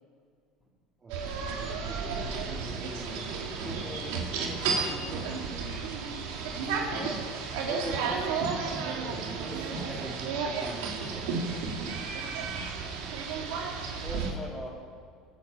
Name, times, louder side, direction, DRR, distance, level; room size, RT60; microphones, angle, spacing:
voice 1, 1.0-3.5 8.8-11.4, right 2 dB, 25° right, -4 dB, 2.7 m, -44 dB
sound 1, 1.1-14.3, right 5 dB, 80° right, 2.5 m, -33 dB
voice 2, 3.1-5.3 6.6-7.2 7.5-8.4 9.5-10.0 14.0-14.8, equal, 10° left, -3 dB, 4.2 m, -41 dB
24.5 x 8.4 x 5.6 m, 2.2 s
supercardioid pair, 120°, 0 cm